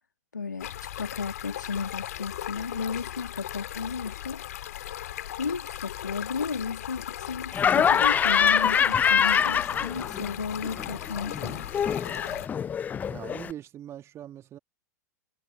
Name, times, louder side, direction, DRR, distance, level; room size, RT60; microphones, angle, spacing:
voice 1, 0.3-0.7 1.0-4.4 5.4-11.6, left 5 dB, 80° left, 2.2 m, -34 dB
Stream, 0.6-12.5, left 12 dB, 65° left, 2.8 m, -38 dB
Laughter, 7.5-10.3 10.6-13.5, left 8 dB, 20° left, 0.4 m, -24 dB
voice 2, 13.1-14.6, right 11 dB, 30° right, 2.2 m, -41 dB
figure-of-eight pair, 90°, 9 cm